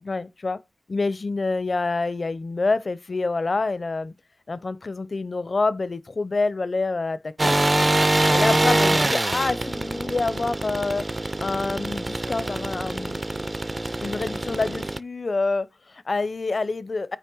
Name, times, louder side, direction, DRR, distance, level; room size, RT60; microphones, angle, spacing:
voice 1, 0.0-0.6 0.9-4.1 4.5-7.6 8.3-11.1 11.4-13.2 14.0-17.2, left 3 dB, 50° left, 0.6 m, -27 dB
sound 1, 7.4-15.0, right 1 dB, 25° right, 0.4 m, -24 dB
9.2 x 3.3 x 6.1 m
wide cardioid pair, 80°, 0 cm